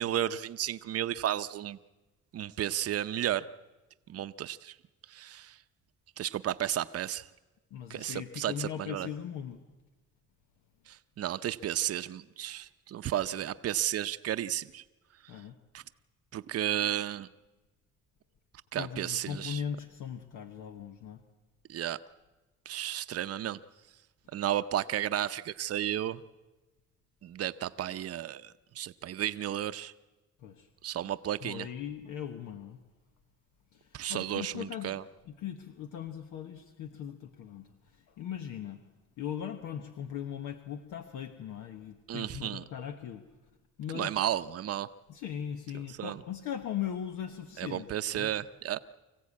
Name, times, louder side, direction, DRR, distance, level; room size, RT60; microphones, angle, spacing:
voice 1, 0.0-1.8 2.3-3.5 4.1-4.7 5.1-5.6 6.2-7.3 7.9-9.1 10.9-14.8 15.3-15.4 15.7-15.8 16.3-17.3 18.7-19.6 21.7-22.0 22.7-23.6 24.3-26.2 27.2-29.9 30.8-31.7 33.9-35.0 42.1-42.6 43.9-44.9 46.0-46.2 47.6-48.8, right 11 dB, 50° right, 12 dB, 0.7 m, -33 dB
voice 2, 7.7-9.6 15.3-15.6 18.7-21.2 30.4-30.7 31.4-32.8 33.7-35.0 35.2-38.8 39.2-43.2 43.8-44.1 45.1-48.3, left 9 dB, 90° left, 7 dB, 1.2 m, -39 dB
25.0 x 15.5 x 8.4 m, 1.1 s
cardioid pair, 90°, 30 cm